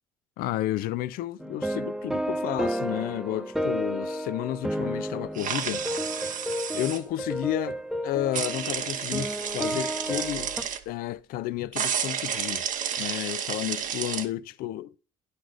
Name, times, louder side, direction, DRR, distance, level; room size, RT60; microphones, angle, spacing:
voice 1, 0.4-5.9 6.7-10.5 10.9-12.7 13.0-14.9, left 14 dB, 65° left, 0.5 m, -32 dB
sound 1, 1.4-10.6, equal, ahead, 0.7 m, -32 dB
sound 2, 5.3-7.0 8.3-10.8 11.7-14.3, right 8 dB, 55° right, 0.9 m, -31 dB
9.9 x 4.2 x 6.1 m
hypercardioid pair, 60°, 16 cm